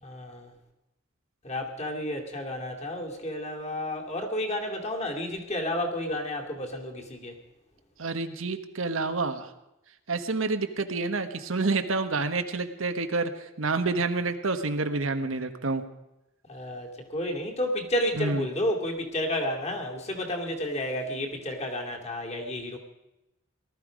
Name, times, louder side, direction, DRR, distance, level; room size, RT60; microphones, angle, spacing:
voice 1, 0.0-0.5 1.4-7.4 16.5-22.8, left 1 dB, 35° left, 2 dB, 2.5 m, -31 dB
voice 2, 8.0-9.5 10.1-15.8 18.2-18.5, right 3 dB, 80° right, 8 dB, 1.2 m, -28 dB
19.0 x 13.0 x 5.1 m, 0.93 s
head